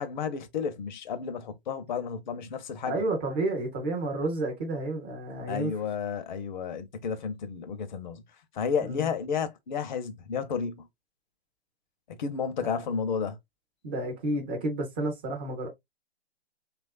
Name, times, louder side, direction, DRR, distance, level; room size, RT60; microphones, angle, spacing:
voice 1, 0.0-2.9 5.5-8.2 8.5-10.9 12.2-13.4, left 6 dB, 45° left, 0.6 m, -32 dB
voice 2, 2.8-5.7 8.8-9.1 12.6-12.8 13.8-15.7, right 2 dB, 10° right, 0.3 m, -31 dB
3.1 x 2.4 x 2.3 m
figure-of-eight pair, 125°, 32 cm